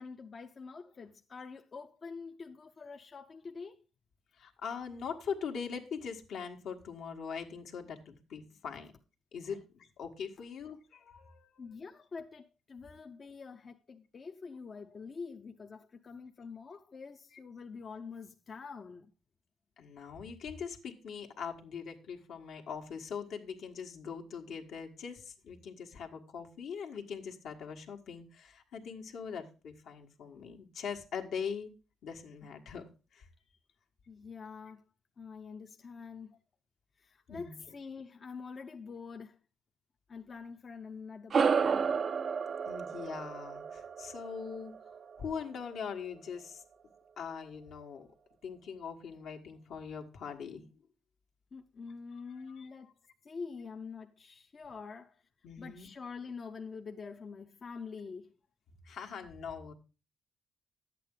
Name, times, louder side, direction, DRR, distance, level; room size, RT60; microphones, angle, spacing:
voice 1, 0.0-3.8 9.5-9.6 11.6-19.1 34.1-34.8 35.2-36.3 37.0-39.4 40.1-42.0 51.5-52.9 53.2-55.2 55.6-58.3, left 5 dB, 40° left, 0.6 m, -46 dB
voice 2, 4.4-8.9 9.3-11.7 19.8-31.7 32.0-32.8 33.1-33.3 37.3-37.5 42.7-44.7 45.2-46.6 47.2-48.1 48.4-50.6 52.1-52.7 55.4-55.9 58.8-59.7, left 6 dB, 75° left, 1.4 m, -42 dB
sound 1, 41.3-46.1, right 6 dB, 45° right, 0.4 m, -32 dB
11.0 x 8.4 x 3.7 m
cardioid pair, 90°, 0 cm